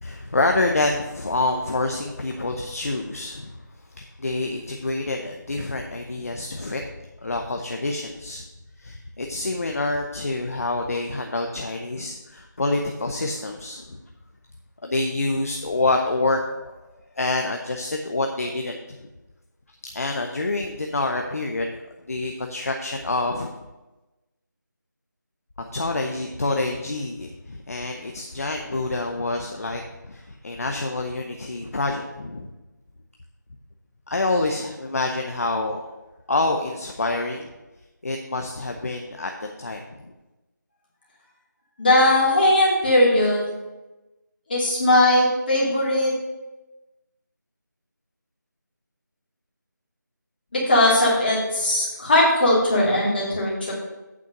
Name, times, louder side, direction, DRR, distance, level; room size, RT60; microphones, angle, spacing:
voice 1, 0.0-3.5 4.0-6.8 7.2-8.4 8.8-14.0 14.8-16.8 17.2-18.8 19.9-21.7 22.1-23.5 25.7-32.5 34.1-35.9 36.3-37.5 38.0-39.3 39.6-40.1, left 2 dB, 50° left, 3 dB, 0.7 m, -27 dB
voice 2, 41.8-43.5 44.5-46.1 50.5-53.7, left 1 dB, 30° left, -6 dB, 2.6 m, -19 dB
8.5 x 4.5 x 6.4 m, 1.1 s
figure-of-eight pair, 175°, 11 cm